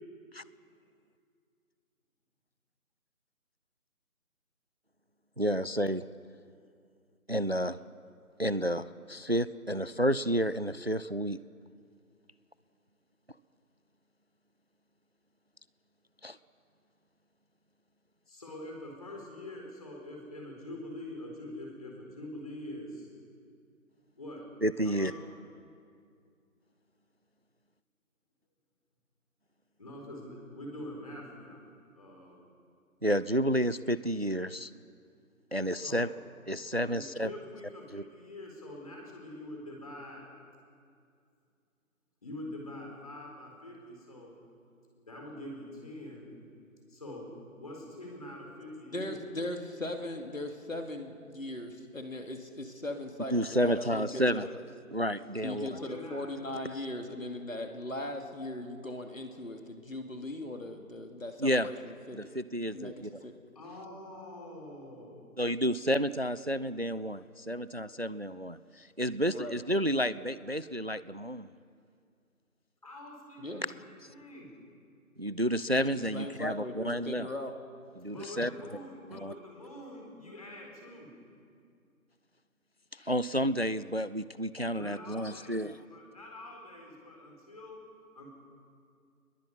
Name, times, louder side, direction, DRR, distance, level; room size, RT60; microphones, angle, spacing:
voice 1, 5.4-6.0 7.3-7.8 8.4-11.4 16.2-16.4 24.6-25.1 33.0-34.7 35.5-36.1 36.5-37.3 37.9-38.0 53.3-54.5 54.9-55.7 61.4-61.7 62.1-63.1 65.4-71.5 75.2-77.3 78.0-78.5 79.1-79.3 82.9-85.8, equal, 45° right, 16 dB, 0.5 m, -30 dB
voice 2, 18.3-23.1 24.2-24.5 24.8-25.3 29.8-31.6 32.0-32.5 35.7-36.1 36.9-40.3 42.2-44.4 45.1-46.3 46.9-47.3 47.6-49.2 55.7-56.3 63.5-65.4 72.8-74.6 78.1-81.1 84.7-87.8 88.1-88.3, left 1 dB, 25° left, 0 dB, 4.3 m, -45 dB
voice 3, 48.9-54.6 55.4-62.2 62.7-63.3 69.3-69.8 73.4-73.6 76.0-77.5, left 1 dB, 65° left, 4 dB, 2.8 m, -39 dB
28.0 x 21.5 x 5.6 m, 2.4 s
figure-of-eight pair, 165°, 44 cm